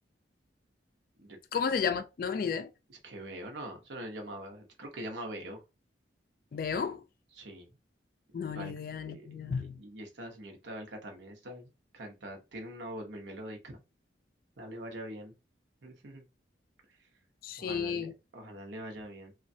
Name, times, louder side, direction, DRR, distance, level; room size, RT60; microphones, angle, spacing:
voice 1, 1.5-2.7 6.5-7.0 8.3-9.8 17.4-18.1, left 6 dB, 50° left, 0.3 m, -33 dB
voice 2, 2.9-5.6 7.3-7.8 8.3-8.7 9.0-9.3 9.5-13.8 14.6-15.3 15.8-16.2 17.0-17.1 17.6-19.3, right 1 dB, 75° right, 0.8 m, -43 dB
3.0 x 2.3 x 2.6 m
head